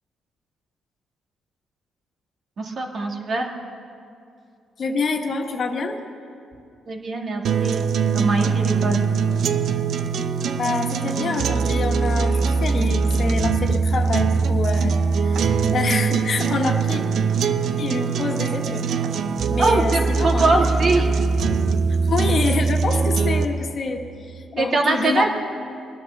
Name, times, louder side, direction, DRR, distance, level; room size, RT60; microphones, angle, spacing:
voice 1, 2.6-3.5 6.9-7.8 8.1-9.0 19.6-21.1 24.6-25.3, right 3 dB, 50° right, 1 dB, 2.1 m, -22 dB
voice 2, 4.8-6.0 10.1-10.2 10.6-17.0 17.8-18.9 19.5-20.5 22.0-25.3, left 4 dB, 50° left, 3 dB, 1.5 m, -26 dB
sound 1, 7.4-23.4, right 5 dB, 65° right, 0.7 m, -22 dB
20.0 x 11.0 x 6.6 m, 2.4 s
cardioid pair, 90°, 0 cm